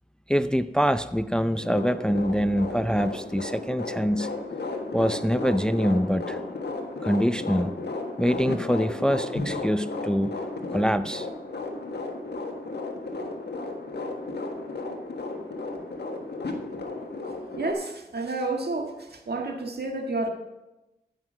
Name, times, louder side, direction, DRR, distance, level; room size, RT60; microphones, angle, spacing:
voice 1, 0.3-4.3 4.9-6.4 7.0-7.7 8.2-10.3 10.7-11.3, equal, 5° left, 13 dB, 0.5 m, -24 dB
sound 1, 1.6-17.7, left 2 dB, 75° left, 1.5 m, -34 dB
voice 2, 17.6-20.3, right 2 dB, 70° right, 4 dB, 1.7 m, -30 dB
13.5 x 5.9 x 6.3 m, 0.97 s
cardioid pair, 45°, 17 cm